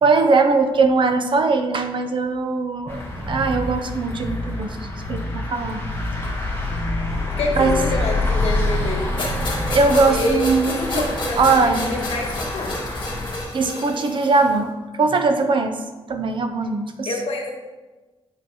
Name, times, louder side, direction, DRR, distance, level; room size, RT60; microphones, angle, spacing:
voice 1, 0.0-5.8 6.1-6.6 7.6-7.8 9.7-11.9 13.5-15.8 16.1-17.2, right 3 dB, 55° right, 7 dB, 0.6 m, -20 dB
sound 1, 2.9-13.4, left 2 dB, 20° left, 1.4 m, -27 dB
sound 2, 3.3-10.1, left 1 dB, 10° right, 0.8 m, -31 dB
voice 2, 7.4-9.0 10.1-10.4 10.8-12.7 17.1-17.5, left 2 dB, 80° left, 0 dB, 1.3 m, -27 dB
sound 3, 9.2-14.5, left 1 dB, 50° left, 1.6 m, -30 dB
7.9 x 5.4 x 2.9 m, 1.2 s
wide cardioid pair, 145°, 10 cm